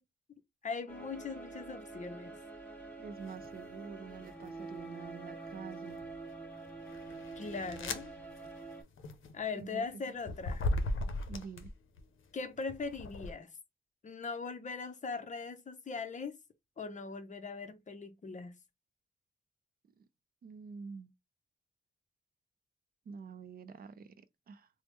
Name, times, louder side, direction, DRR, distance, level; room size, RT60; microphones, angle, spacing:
voice 1, 0.6-2.3 7.4-8.1 9.3-10.7 12.3-13.5 14.0-16.4 16.8-18.5, left 4 dB, 40° left, 0.6 m, -40 dB
sound 1, 0.9-8.8, right 3 dB, 10° left, 1.5 m, -46 dB
voice 2, 3.0-6.0 9.6-10.1 11.3-11.7 20.0-20.1 20.4-21.1 23.1-24.7, right 5 dB, 50° right, 0.4 m, -47 dB
sound 2, 3.3-3.6 4.2-5.0 5.6-12.0 12.6-13.3, left 2 dB, 90° left, 0.6 m, -38 dB
3.4 x 2.0 x 3.0 m
wide cardioid pair, 105°, 20 cm